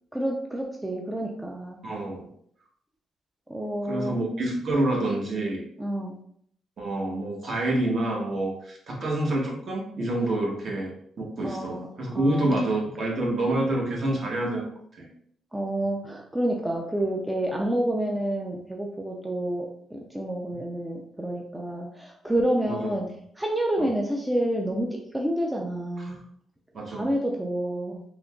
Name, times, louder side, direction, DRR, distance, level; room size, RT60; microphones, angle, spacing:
voice 1, 0.1-1.8 3.5-4.2 5.8-6.1 11.4-11.9 12.1-12.6 15.5-23.1 23.4-24.9 25.1-26.2 26.9-28.0, right 1 dB, 10° right, 0 dB, 0.4 m, -29 dB
voice 2, 1.8-2.3 3.8-5.6 6.8-14.7 15.0-15.1 20.5-20.6 22.6-22.9 23.8-23.9 26.0-26.2 26.7-27.1, right 1 dB, 45° right, -1 dB, 0.9 m, -27 dB
3.8 x 2.8 x 2.2 m, 0.67 s
cardioid pair, 120°, 0 cm